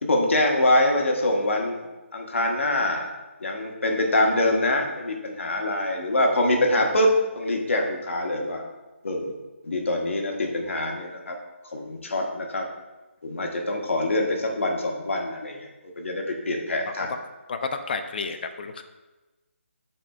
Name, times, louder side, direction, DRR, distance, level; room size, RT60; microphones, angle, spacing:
voice 1, 0.0-1.9 2.1-3.1 3.4-8.6 9.0-9.3 9.6-11.4 11.7-12.7 13.2-15.7 16.0-17.1, left 1 dB, 70° left, 1 dB, 1.2 m, -24 dB
voice 2, 17.5-18.8, left 4 dB, 45° left, 7 dB, 0.5 m, -31 dB
9.8 x 4.3 x 2.4 m, 1.1 s
figure-of-eight pair, 155°, 7 cm